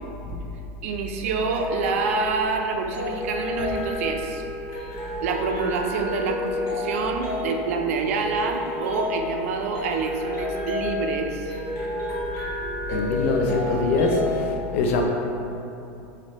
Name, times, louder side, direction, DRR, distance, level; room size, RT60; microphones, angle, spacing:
voice 1, 0.8-4.4 4.7-4.9 5.2-11.6, right 4 dB, 85° right, 3 dB, 0.4 m, -27 dB
sound 1, 1.0-14.5, left 1 dB, 40° left, 0.8 m, -31 dB
voice 2, 12.9-15.0, left 3 dB, 75° left, 2 dB, 0.5 m, -23 dB
3.2 x 2.6 x 4.0 m, 2.9 s
supercardioid pair, 145°, 7 cm